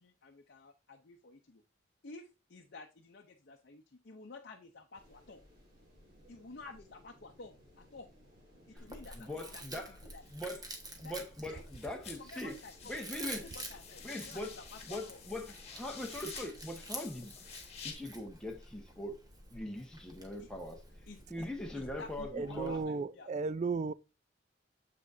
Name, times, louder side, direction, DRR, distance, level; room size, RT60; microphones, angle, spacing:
voice 1, 0.0-1.6 2.0-5.4 6.3-8.1 8.7-10.2 11.0-11.1 11.4-11.6 12.2-15.2 20.4-20.5 21.1-21.5 21.7-23.3, left 3 dB, 55° left, 0.7 m, -52 dB
sound 1, 4.9-22.4, left 1 dB, 50° right, 3.9 m, -63 dB
Chewing mastication, 8.8-22.8, right 2 dB, 20° right, 1.4 m, -49 dB
voice 2, 9.1-9.9 10.3-10.6 11.0-12.6 12.9-13.4 14.0-14.6 14.9-17.3 17.8-19.2 19.5-20.8 21.3-22.8, left 1 dB, 5° left, 1.1 m, -41 dB
sound 2, 10.2-11.3 11.6-17.9, left 6 dB, 35° left, 1.6 m, -50 dB
voice 3, 22.3-23.9, right 4 dB, 35° right, 0.3 m, -34 dB
7.4 x 6.1 x 2.6 m
head